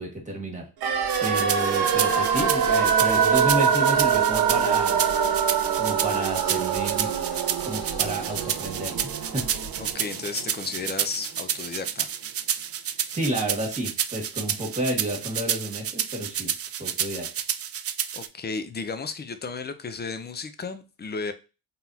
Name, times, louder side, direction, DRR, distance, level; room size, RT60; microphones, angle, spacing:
voice 1, 0.0-5.1 5.8-7.2 7.6-9.5 13.1-16.5 16.8-17.3, right 1 dB, 15° right, 1.8 m, -31 dB
sound 1, 0.8-9.9, left 1 dB, 55° left, 2.1 m, -43 dB
sound 2, 0.8-10.7 11.0-11.1, right 7 dB, 65° right, 1.0 m, -24 dB
sound 3, 1.1-18.3, right 9 dB, 35° right, 0.4 m, -30 dB
voice 2, 9.8-12.1 18.1-21.3, left 4 dB, 25° left, 0.6 m, -33 dB
4.0 x 3.6 x 2.8 m
cardioid pair, 105°, 40 cm